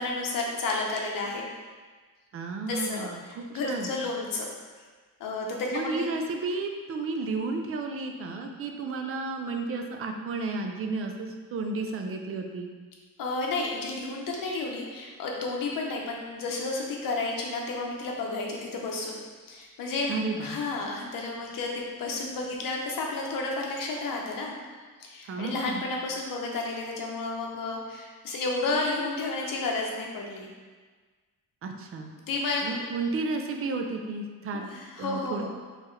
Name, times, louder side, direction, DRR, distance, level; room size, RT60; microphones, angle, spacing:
voice 1, 0.0-1.4 2.7-4.5 5.2-6.1 13.2-19.2 19.5-24.5 25.0-30.5 32.3-32.8 34.7-35.5, left 3 dB, 65° left, -1 dB, 0.8 m, -31 dB
voice 2, 2.3-3.9 5.7-12.7 20.1-20.6 25.3-25.8 31.6-32.1 32.6-34.7 35.0-35.5, right 3 dB, 40° right, 4 dB, 0.4 m, -32 dB
4.4 x 3.1 x 3.2 m, 1.4 s
cardioid pair, 160°, 37 cm